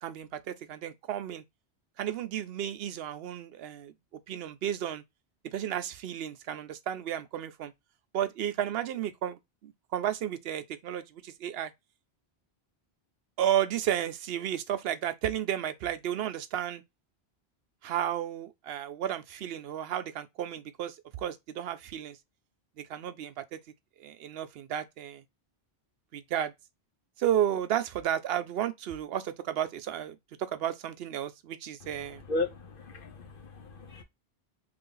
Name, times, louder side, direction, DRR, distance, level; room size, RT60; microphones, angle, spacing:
voice 1, 0.0-1.4 2.0-3.9 4.3-5.0 5.4-7.7 8.1-11.7 13.4-16.8 17.8-22.2 22.8-23.6 24.0-25.2 26.1-26.5 27.2-32.2, right 10 dB, 70° right, 0.8 m, -33 dB
voice 2, 32.3-34.0, left 2 dB, 60° left, 0.9 m, -35 dB
3.2 x 2.5 x 3.7 m
omnidirectional pair, 1.1 m